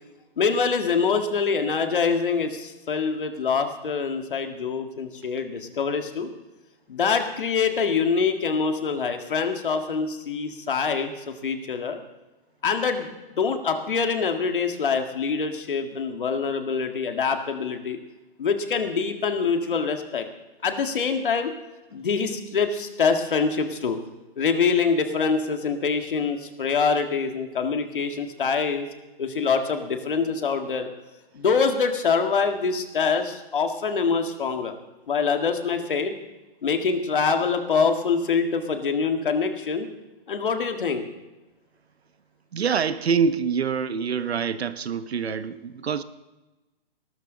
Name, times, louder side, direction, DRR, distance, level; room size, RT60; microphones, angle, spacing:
voice 1, 0.4-6.3 6.9-12.0 12.6-18.0 18.4-20.3 20.6-21.5 21.9-24.0 24.4-28.9 29.2-30.9 31.3-34.7 35.1-36.1 36.6-39.9 40.3-41.0, left 5 dB, 55° left, 6 dB, 1.8 m, -25 dB
voice 2, 42.5-46.0, right 6 dB, 85° right, 13 dB, 1.1 m, -25 dB
19.5 x 12.5 x 3.9 m, 1.1 s
hypercardioid pair, 180°, 31 cm